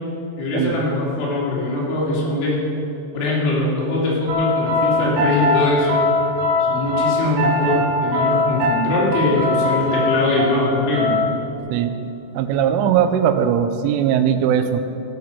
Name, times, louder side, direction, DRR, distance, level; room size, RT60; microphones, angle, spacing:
voice 1, 0.4-2.6 3.1-6.0 6.6-11.2, left 2 dB, 75° left, -5 dB, 5.4 m, -21 dB
sound 1, 4.3-11.6, left 2 dB, 70° right, 2.0 m, -21 dB
voice 2, 12.3-14.8, right 9 dB, 90° right, 9 dB, 3.2 m, -19 dB
17.0 x 9.4 x 5.8 m, 2.8 s
omnidirectional pair, 5.7 m